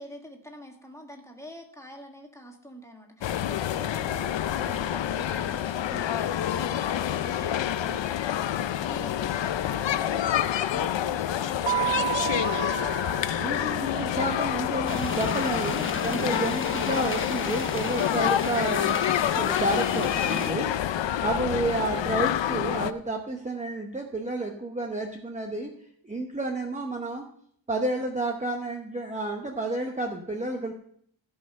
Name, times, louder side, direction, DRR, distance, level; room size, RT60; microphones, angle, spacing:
voice 1, 0.0-12.4, equal, 5° left, 1 dB, 1.6 m, -45 dB
sound 1, 3.2-22.9, left 11 dB, 65° left, 0.6 m, -27 dB
Keyboard (musical), 11.7-14.2, right 16 dB, 75° right, 0.6 m, -31 dB
voice 2, 13.4-19.0 19.4-20.7 21.2-25.7 26.0-27.3 27.7-30.7, right 2 dB, 15° right, 2 dB, 0.9 m, -30 dB
sound 2, 14.9-20.5, left 4 dB, 25° left, 0.9 m, -34 dB
16.0 x 5.5 x 5.4 m, 0.66 s
wide cardioid pair, 165°, 48 cm